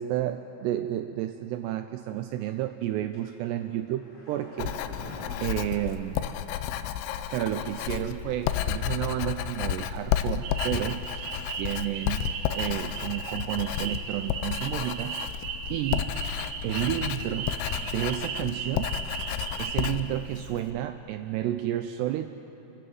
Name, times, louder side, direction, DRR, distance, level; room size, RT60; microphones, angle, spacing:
voice 1, 0.0-4.8 5.4-6.3 7.3-11.2 11.6-16.1 16.6-17.5 17.8-18.9 19.6-22.3, right 13 dB, 85° right, 8 dB, 2.4 m, -31 dB
sound 1, 3.1-6.8 7.1-7.2, equal, 40° left, 6.1 m, -46 dB
Writing, 4.6-20.7, left 11 dB, 90° left, 2.2 m, -32 dB
sound 2, 10.4-19.9, right 6 dB, 65° right, 2.3 m, -37 dB
29.5 x 13.5 x 7.9 m, 3.0 s
omnidirectional pair, 5.4 m